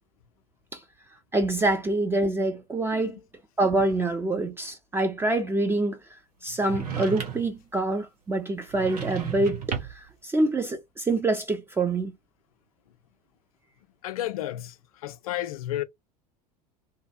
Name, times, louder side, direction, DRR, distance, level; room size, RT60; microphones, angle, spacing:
voice 1, 1.3-3.2 3.6-6.0 6.4-12.1, right 2 dB, 10° right, 0.4 m, -26 dB
sound 1, 6.7-7.6 8.7-10.1, right 7 dB, 70° right, 0.9 m, -33 dB
voice 2, 14.0-15.8, left 13 dB, 60° left, 0.4 m, -32 dB
2.6 x 2.1 x 2.6 m
figure-of-eight pair, 80°, 21 cm